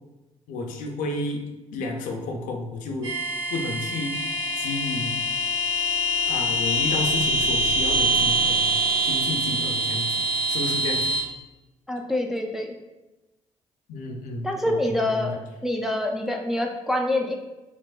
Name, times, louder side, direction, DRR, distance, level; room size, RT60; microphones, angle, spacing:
voice 1, 0.5-1.4 1.7-3.1 3.5-4.1 4.6-5.2 6.3-8.7 9.0-10.2 10.5-11.1 13.9-15.3, left 2 dB, 60° left, 1 dB, 0.5 m, -31 dB
sound 1, 3.0-11.2, right 1 dB, 70° right, 1.2 m, -24 dB
voice 2, 11.9-12.8 14.4-15.3 15.6-17.4, left 1 dB, ahead, 1 dB, 0.4 m, -26 dB
4.8 x 2.0 x 2.3 m, 1.1 s
figure-of-eight pair, 45°, 16 cm